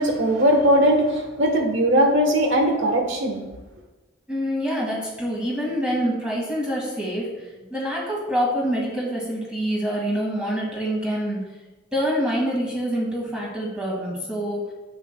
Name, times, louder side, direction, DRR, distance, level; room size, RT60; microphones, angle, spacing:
voice 1, 0.0-3.4, right 1 dB, 75° right, 2 dB, 1.3 m, -19 dB
voice 2, 4.3-7.3 7.7-11.4 11.9-14.6, equal, 5° right, -5 dB, 1.9 m, -26 dB
8.9 x 7.3 x 2.3 m, 1.1 s
head